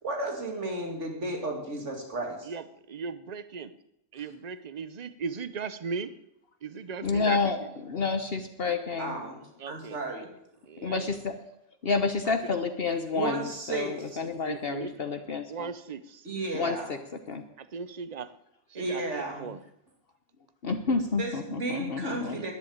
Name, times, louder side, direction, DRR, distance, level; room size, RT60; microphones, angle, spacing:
voice 1, 0.0-2.5 9.0-10.3 13.1-13.9 16.2-16.9 18.7-19.5 21.2-22.5, right 2 dB, 75° right, 2 dB, 2.8 m, -33 dB
voice 2, 2.4-3.7 4.1-6.1 6.6-7.4 9.6-10.2 10.6-11.1 12.3-12.4 14.2-14.9 15.5-16.3 17.6-18.3 18.7-19.6 22.3-22.5, right 5 dB, 40° right, 14 dB, 0.8 m, -38 dB
voice 3, 7.0-7.6 7.9-9.3 10.8-11.4 11.8-15.7 16.5-17.0 17.3-17.4 20.6-22.4, left 4 dB, 55° left, 7 dB, 1.1 m, -29 dB
10.5 x 10.5 x 8.6 m, 0.81 s
omnidirectional pair, 1.3 m